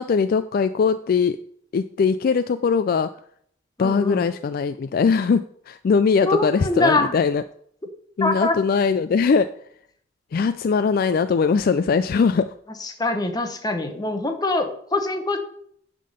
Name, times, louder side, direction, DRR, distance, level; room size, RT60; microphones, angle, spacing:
voice 1, 0.0-1.4 1.7-3.1 3.8-7.4 8.2-9.5 10.3-12.5, left 5 dB, 50° left, 11 dB, 0.3 m, -21 dB
voice 2, 3.8-4.3 6.2-7.1 8.2-8.6 12.8-15.4, left 2 dB, 20° left, 6 dB, 1.0 m, -23 dB
10.0 x 3.8 x 6.5 m, 0.65 s
head